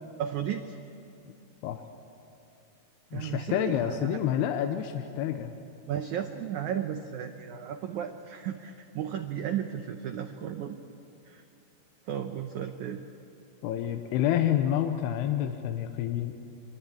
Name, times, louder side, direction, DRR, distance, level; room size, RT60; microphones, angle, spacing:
voice 1, 0.2-0.8 3.1-4.2 5.9-10.8 11.2-11.4 12.0-13.0, right 9 dB, 85° right, 7 dB, 1.6 m, -34 dB
voice 2, 3.1-5.5 13.6-16.3, left 11 dB, 85° left, 6 dB, 2.9 m, -28 dB
23.5 x 22.5 x 8.6 m, 2.6 s
omnidirectional pair, 4.6 m